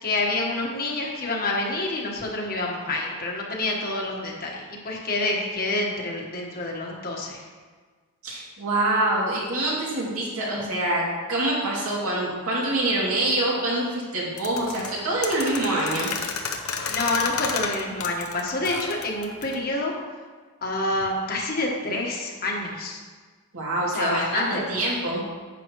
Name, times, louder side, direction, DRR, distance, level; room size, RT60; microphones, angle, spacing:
voice 1, 0.0-7.4 16.9-19.9 20.6-23.0 23.8-24.8, left 2 dB, 40° left, -1 dB, 1.3 m, -28 dB
voice 2, 8.2-11.0 11.3-16.1 23.5-25.2, right 2 dB, 70° right, -5 dB, 2.6 m, -25 dB
sound 1, 14.4-19.6, left 6 dB, 70° left, 0.8 m, -31 dB
10.5 x 7.4 x 3.1 m, 1.5 s
head